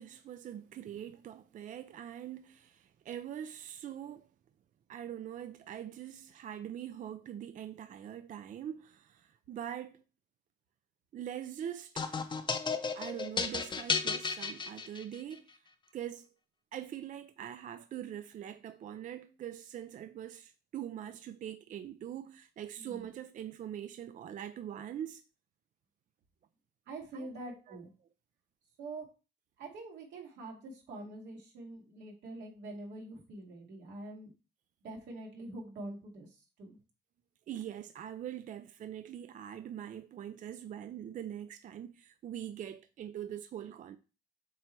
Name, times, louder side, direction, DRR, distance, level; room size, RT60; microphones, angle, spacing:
voice 1, 0.0-4.3 4.9-10.0 11.1-12.4 12.9-15.7 15.9-16.3 16.7-25.2 27.1-27.8 37.5-44.0, right 10 dB, 45° right, 0.4 m, -43 dB
sound 1, 12.0-15.3, left 5 dB, 25° left, 0.6 m, -34 dB
voice 2, 26.9-27.9 28.8-29.1 29.6-34.3 34.8-36.3 36.6-36.8, right 2 dB, 90° right, 2.3 m, -45 dB
7.5 x 3.0 x 4.5 m
cardioid pair, 130°, 18 cm